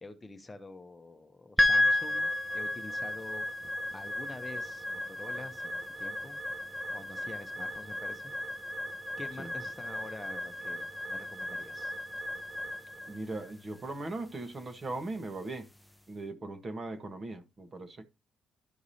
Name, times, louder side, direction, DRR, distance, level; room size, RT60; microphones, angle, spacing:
voice 1, 0.0-3.5 3.9-6.4 6.9-8.3 9.2-11.9, left 2 dB, 20° left, 1.0 m, -47 dB
sound 1, 1.6-15.9, left 1 dB, ahead, 0.7 m, -34 dB
voice 2, 13.1-15.7 16.1-18.1, right 2 dB, 40° right, 1.4 m, -39 dB
12.5 x 4.7 x 2.8 m
cardioid pair, 90°, 0 cm